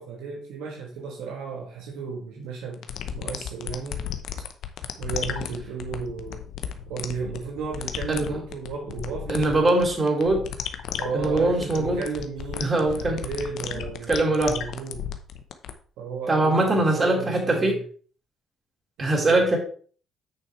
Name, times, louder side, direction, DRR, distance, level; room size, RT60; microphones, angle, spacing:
voice 1, 0.0-2.9 3.1-4.1 5.0-6.4 6.9-9.7 11.0-15.0 16.0-17.8 19.0-19.6, right 5 dB, 80° right, 1.4 m, -34 dB
sound 1, 2.7-15.7, left 9 dB, 70° left, 0.8 m, -34 dB
voice 2, 8.1-8.4 9.3-10.4 11.1-12.0 12.6-13.2 14.1-14.6 16.3-17.8 19.0-19.6, right 2 dB, 35° right, 4.0 m, -22 dB
8.8 x 6.7 x 3.3 m
hypercardioid pair, 55°, 0 cm